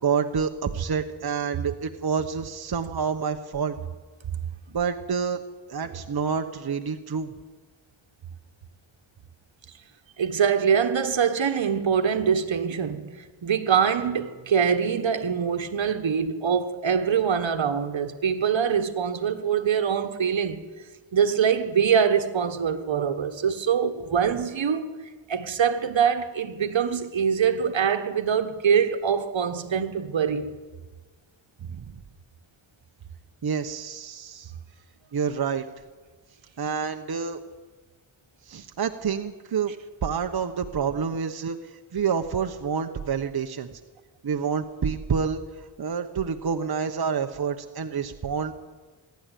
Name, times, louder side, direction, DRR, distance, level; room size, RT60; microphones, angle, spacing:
voice 1, 0.0-3.8 4.7-5.4 5.7-7.3 31.7-32.0 33.4-34.5 35.1-35.7 36.6-37.4 38.4-39.7 40.0-43.7 44.2-48.5, right 6 dB, 50° right, 1.1 m, -28 dB
voice 2, 10.2-20.6 21.1-24.9 25.3-30.5, right 7 dB, 70° right, 1.5 m, -24 dB
24.5 x 11.5 x 9.3 m
cardioid pair, 55°, 47 cm